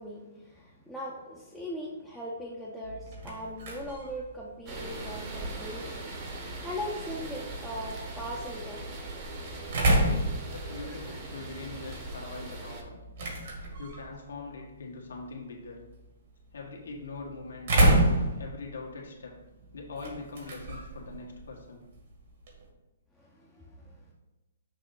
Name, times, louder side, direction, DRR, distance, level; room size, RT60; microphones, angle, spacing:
voice 1, 0.0-6.1 6.6-8.9 23.1-24.1, equal, ahead, -6 dB, 0.7 m, -39 dB
sound 1, 2.8-22.7, right 1 dB, 55° right, 1.8 m, -32 dB
sound 2, 4.7-12.8, right 2 dB, 30° right, 1.1 m, -40 dB
voice 2, 10.5-13.0 13.8-15.8 16.5-17.7 18.4-19.4 19.7-21.8, left 3 dB, 85° left, -1 dB, 1.5 m, -42 dB
6.5 x 2.7 x 5.6 m, 1.0 s
hypercardioid pair, 155°, 0 cm